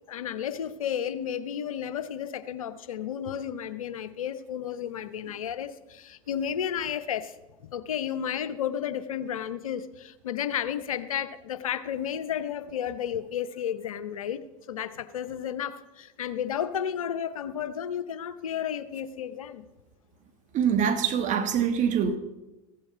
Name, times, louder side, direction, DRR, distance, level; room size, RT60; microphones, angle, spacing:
voice 1, 0.1-7.3 7.6-14.4 14.7-19.7, left 9 dB, 85° left, 13 dB, 0.8 m, -32 dB
voice 2, 20.5-22.2, right 7 dB, 45° right, 7 dB, 1.5 m, -24 dB
15.0 x 7.7 x 5.6 m, 1.0 s
hypercardioid pair, 80°, 17 cm